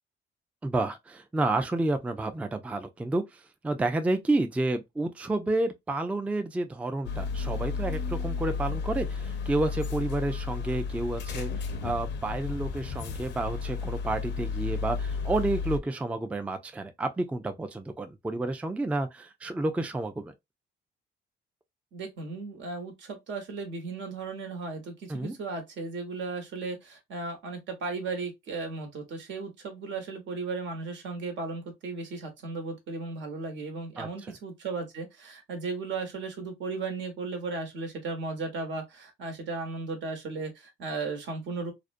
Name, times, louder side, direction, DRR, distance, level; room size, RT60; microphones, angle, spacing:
voice 1, 0.6-3.2 3.6-11.5 11.8-20.3 25.1-25.4 34.0-34.1, right 2 dB, 5° right, 0.3 m, -30 dB
sound 1, 7.1-15.8, left 5 dB, 65° left, 0.5 m, -33 dB
voice 2, 21.9-41.7, right 3 dB, 70° right, 1.0 m, -36 dB
2.4 x 2.1 x 2.4 m
cardioid pair, 90°, 20 cm